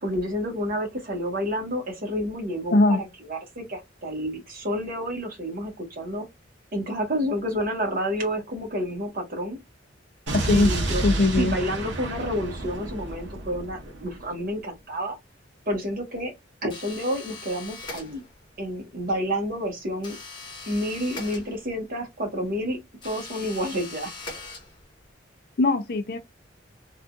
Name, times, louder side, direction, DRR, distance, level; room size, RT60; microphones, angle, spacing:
voice 1, 0.0-6.3 6.7-9.6 10.5-15.2 15.7-16.3 16.6-18.2 18.6-20.2 20.7-22.8 23.0-24.1, equal, 45° right, 1.2 m, -29 dB
voice 2, 10.3-10.7 11.0-11.6 25.6-26.2, left 2 dB, 55° left, 0.5 m, -20 dB
Explosion, 10.3-14.3, right 1 dB, 65° right, 0.9 m, -30 dB
sound 1, 16.7-18.5 20.0-21.9 23.0-25.1, left 3 dB, 25° left, 0.9 m, -41 dB
3.6 x 2.4 x 2.3 m
head